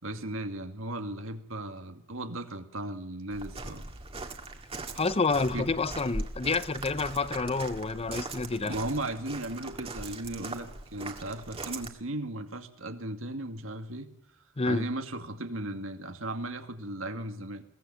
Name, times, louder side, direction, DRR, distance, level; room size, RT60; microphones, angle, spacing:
voice 1, 0.0-3.8 5.5-5.7 8.6-14.1 14.6-17.6, right 1 dB, 75° right, 2.3 m, -36 dB
Walk footsteps, 3.3-11.9, right 2 dB, 30° right, 2.1 m, -40 dB
voice 2, 5.0-8.7 14.6-14.8, left 4 dB, 30° left, 0.7 m, -28 dB
22.5 x 17.5 x 7.2 m
head